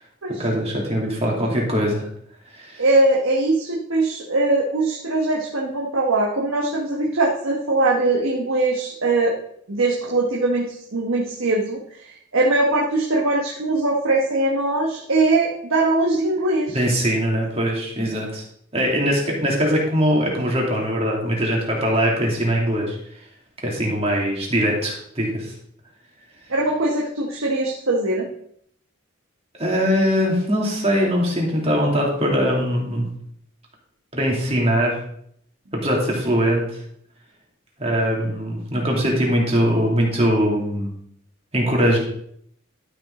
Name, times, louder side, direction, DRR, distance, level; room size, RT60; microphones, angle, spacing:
voice 1, 0.4-2.1 2.6-2.8 16.7-18.4 18.7-23.0 23.6-25.5 29.6-33.1 34.1-35.0 35.8-36.6 37.8-40.9 41.5-42.0, equal, 30° right, -2 dB, 2.6 m, -21 dB
voice 2, 2.8-9.4 9.7-16.8 26.5-28.3, right 2 dB, 80° right, -3 dB, 1.3 m, -21 dB
12.0 x 6.2 x 3.8 m, 0.68 s
head